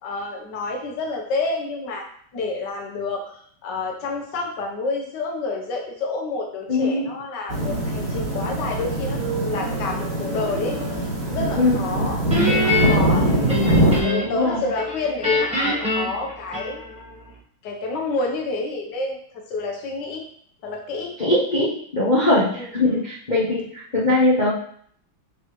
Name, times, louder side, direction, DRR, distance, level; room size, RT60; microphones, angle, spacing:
voice 1, 0.0-2.1 2.3-16.8 17.6-19.2 19.5-20.2 20.6-21.2 22.3-23.0, left 3 dB, 60° left, 0 dB, 1.6 m, -29 dB
voice 2, 6.7-7.1 11.6-11.8 14.2-14.6 21.2-24.5, left 2 dB, 40° left, -6 dB, 0.6 m, -21 dB
sound 1, 7.5-14.0, right 1 dB, 50° right, 2.5 m, -23 dB
Guitar, 12.3-14.4 14.8-17.1, left 2 dB, 5° right, 1.2 m, -23 dB
7.2 x 4.1 x 3.2 m, 0.63 s
omnidirectional pair, 2.3 m